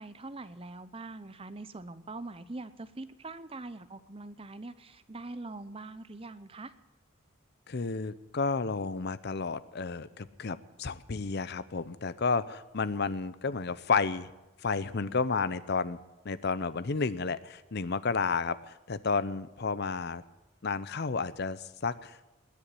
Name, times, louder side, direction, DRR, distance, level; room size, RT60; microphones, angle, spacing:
voice 1, 0.0-6.7, right 2 dB, 25° right, 12 dB, 0.7 m, -43 dB
voice 2, 7.7-14.3 14.6-16.0 16.2-20.2 20.6-22.2, left 4 dB, 50° left, 16 dB, 0.6 m, -31 dB
20.5 x 7.1 x 9.6 m, 1.1 s
head